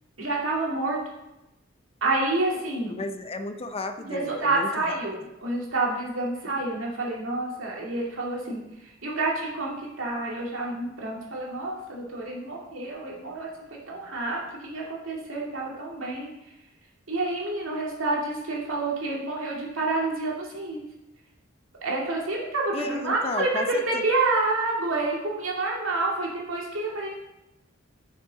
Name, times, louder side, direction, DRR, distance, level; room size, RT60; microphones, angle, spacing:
voice 1, 0.2-1.0 2.0-3.0 4.1-16.3 17.1-20.8 21.8-27.1, right 2 dB, 85° right, -3 dB, 2.3 m, -28 dB
voice 2, 3.0-5.0 22.7-24.0, left 2 dB, 30° left, 8 dB, 0.6 m, -33 dB
10.0 x 6.5 x 4.1 m, 0.94 s
head